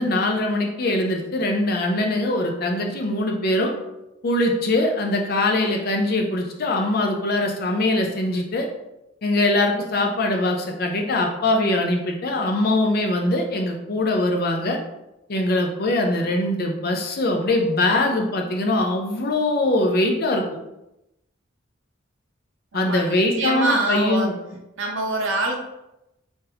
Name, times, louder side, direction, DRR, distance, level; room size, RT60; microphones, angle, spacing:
voice 1, 0.0-3.7 4.2-8.7 9.2-14.8 15.3-20.4 22.7-24.4, left 2 dB, 45° left, 2 dB, 0.5 m, -22 dB
voice 2, 22.7-24.3 24.8-25.6, right 2 dB, 70° right, 2 dB, 0.6 m, -25 dB
3.9 x 2.6 x 2.7 m, 0.90 s
head